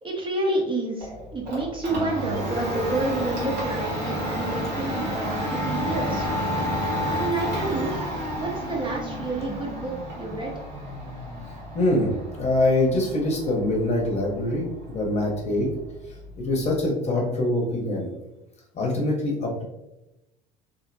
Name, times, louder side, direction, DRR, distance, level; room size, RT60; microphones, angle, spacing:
voice 1, 0.0-6.3 7.0-8.1 8.4-10.6, right 2 dB, 25° right, -1 dB, 0.6 m, -29 dB
Domestic sounds home sounds, 1.0-16.8, equal, 80° right, 1.1 m, -31 dB
voice 2, 11.7-15.7 16.4-18.1 18.7-19.6, left 1 dB, 30° left, -1 dB, 0.8 m, -24 dB
2.5 x 2.1 x 2.6 m, 0.94 s
hypercardioid pair, 65°, 21 cm